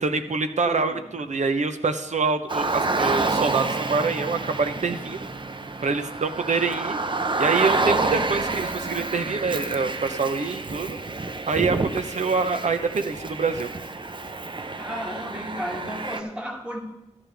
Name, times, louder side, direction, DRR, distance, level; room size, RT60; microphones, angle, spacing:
voice 1, 0.0-5.3 5.8-7.0 7.4-11.0 11.5-13.7, right 4 dB, 70° right, 8 dB, 0.9 m, -25 dB
voice 2, 0.7-1.0 14.8-16.8, equal, 10° right, 0 dB, 2.3 m, -33 dB
Car, 2.5-16.2, right 3 dB, 40° right, 0.8 m, -28 dB
13.5 x 11.0 x 3.5 m, 0.89 s
cardioid pair, 55°, 13 cm